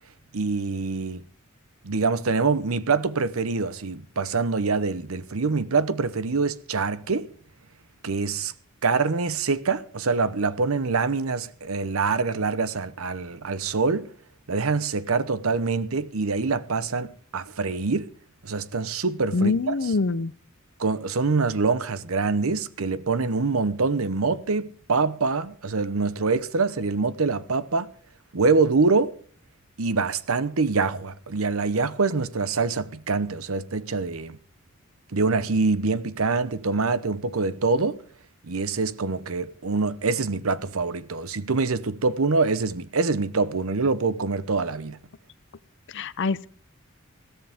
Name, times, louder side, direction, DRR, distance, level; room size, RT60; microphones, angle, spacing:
voice 1, 0.3-1.2 1.8-7.3 8.0-8.5 8.8-14.1 14.5-18.1 18.4-19.9 20.8-27.9 28.3-29.2 29.8-34.4 35.1-38.0 38.5-45.0, right 4 dB, 80° right, 0.9 m, -25 dB
voice 2, 19.3-20.3 45.9-46.5, left 3 dB, 60° left, 0.6 m, -24 dB
21.0 x 15.5 x 3.6 m
head